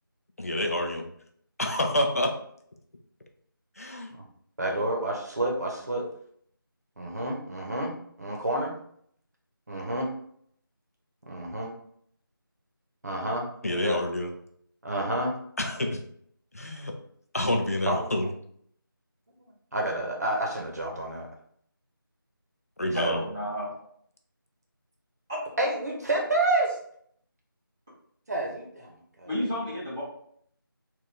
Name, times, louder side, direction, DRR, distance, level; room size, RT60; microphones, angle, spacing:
voice 1, 0.4-1.1 1.6-2.3 3.8-4.1 13.6-14.3 15.6-16.0 16.5-16.9 17.3-18.3 22.8-23.2, left 1 dB, 40° left, 3 dB, 0.6 m, -28 dB
voice 2, 4.6-6.1 7.0-8.8 9.7-10.1 11.2-11.7 13.0-14.0 14.8-15.4 17.9-18.1 19.7-21.3 22.8-23.2 25.6-26.7 28.3-29.3, right 1 dB, 45° right, 0 dB, 1.0 m, -29 dB
voice 3, 22.9-23.7 29.3-30.0, equal, 10° right, -12 dB, 0.8 m, -31 dB
3.6 x 2.6 x 4.1 m, 0.66 s
figure-of-eight pair, 175°, 12 cm